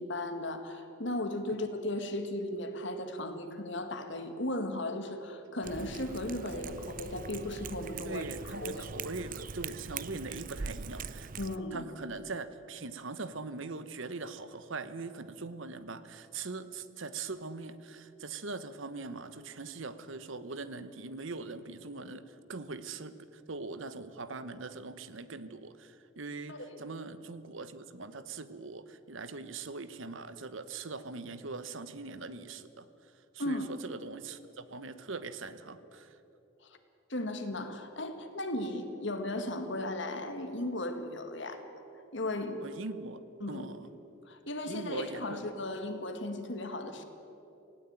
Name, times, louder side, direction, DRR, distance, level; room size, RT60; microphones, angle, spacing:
voice 1, 0.0-8.2 8.6-8.9 11.4-11.9 26.5-26.8 33.4-33.6 36.6-36.8 37.1-41.6 42.1-42.6 43.4-43.7 44.3-47.0, left 1 dB, 60° left, 7 dB, 1.9 m, -36 dB
Cat, 5.6-11.6, right 5 dB, 40° right, 0.5 m, -42 dB
voice 2, 8.0-11.3 11.7-36.2 42.6-43.2 43.5-43.9 44.7-45.4, right 3 dB, 70° right, 13 dB, 1.1 m, -41 dB
18.5 x 16.5 x 8.9 m, 2.8 s
head